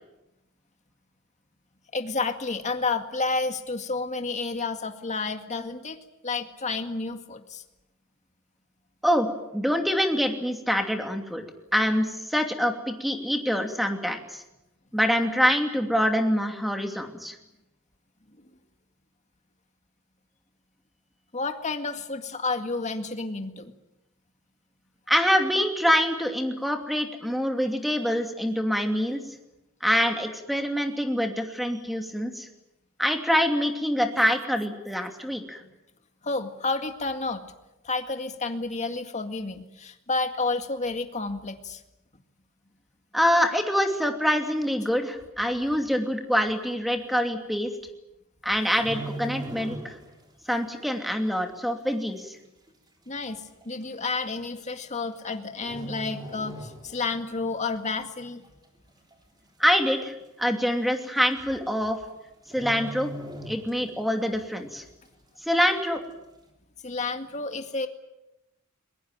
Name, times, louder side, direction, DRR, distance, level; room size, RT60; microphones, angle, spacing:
voice 1, 1.9-6.0 6.2-7.6 21.3-23.7 36.2-37.4 37.8-41.8 53.1-58.4 66.8-67.9, left 3 dB, 35° left, 7 dB, 2.0 m, -30 dB
voice 2, 9.5-11.4 11.7-14.4 14.9-17.4 25.1-29.2 29.8-32.5 33.0-35.6 43.1-47.7 48.4-50.0 50.5-52.4 59.6-62.0 62.5-63.1 63.5-64.8 65.4-66.0, equal, ahead, 4 dB, 2.7 m, -25 dB
sound 1, 48.5-50.3 50.5-50.8 51.4-51.5 52.4-52.5 52.7-52.8 53.6-53.8 54.9-55.3 55.6-57.2 57.5-57.7 58.2-58.8 59.1-59.2 59.4-59.5 59.9-60.0 61.0-61.1 61.4-61.7 61.9-62.1 62.5-64.1 64.5-64.6, right 2 dB, 20° right, 3.7 m, -39 dB
22.0 x 22.0 x 9.0 m, 0.93 s
head